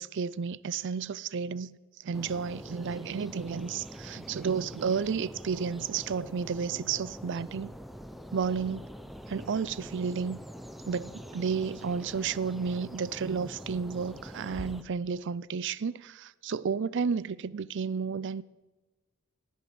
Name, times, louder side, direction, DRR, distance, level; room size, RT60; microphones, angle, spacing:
voice 1, 0.0-7.7 8.3-8.9 9.3-10.4 10.9-18.4, right 6 dB, 60° right, 0.5 m, -32 dB
sound 1, 2.1-14.8, equal, ahead, 0.7 m, -44 dB
17.5 x 8.2 x 7.8 m
head